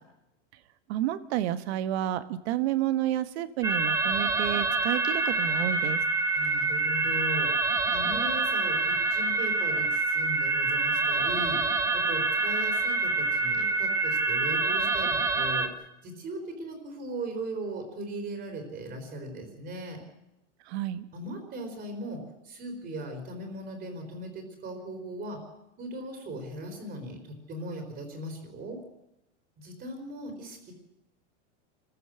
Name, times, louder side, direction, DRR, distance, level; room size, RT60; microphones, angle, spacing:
voice 1, 0.9-6.0 20.7-21.0, right 12 dB, 60° right, 13 dB, 1.5 m, -30 dB
sound 1, 3.6-15.7, right 3 dB, 10° right, 1.3 m, -26 dB
voice 2, 6.3-20.0 21.1-25.4 25.8-28.8 29.6-30.7, right 1 dB, 30° right, 5 dB, 4.3 m, -38 dB
25.0 x 14.5 x 8.0 m, 0.89 s
supercardioid pair, 145°, 36 cm